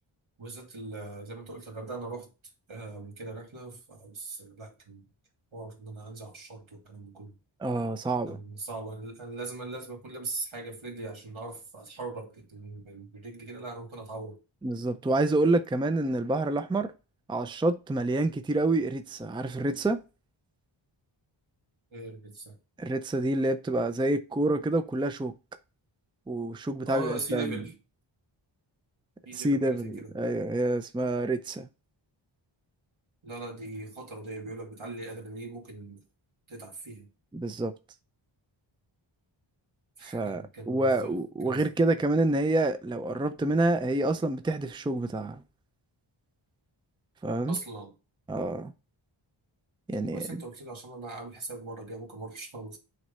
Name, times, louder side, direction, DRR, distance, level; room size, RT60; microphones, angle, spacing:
voice 1, 0.4-2.3 2.7-5.0 5.5-7.3 8.3-14.4 21.9-22.5 26.8-27.7 29.3-30.1 33.2-36.0 36.5-37.1 40.0-41.1 41.4-41.6 47.5-47.9 50.1-52.8, right 3 dB, 75° right, 2.6 m, -40 dB
voice 2, 7.6-8.4 14.6-16.9 17.3-20.0 22.8-25.3 26.3-27.6 29.3-31.7 37.3-37.7 40.0-45.4 47.2-47.6 48.3-48.7 49.9-50.4, right 2 dB, 10° right, 0.4 m, -28 dB
7.9 x 3.2 x 5.4 m
wide cardioid pair, 115°, 48 cm